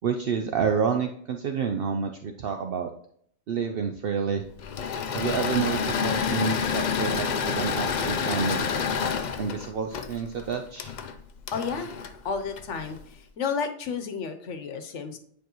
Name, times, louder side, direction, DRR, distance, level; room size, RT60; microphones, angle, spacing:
voice 1, 0.0-2.9 3.5-4.4 5.1-8.7 9.4-10.9, right 6 dB, 60° right, 5 dB, 0.7 m, -29 dB
Engine / Mechanisms, 4.6-13.0, left 6 dB, 55° left, 0.5 m, -29 dB
voice 2, 11.5-11.9 12.2-15.2, left 5 dB, 85° left, 7 dB, 1.1 m, -32 dB
9.2 x 4.7 x 3.0 m, 0.64 s
omnidirectional pair, 1.2 m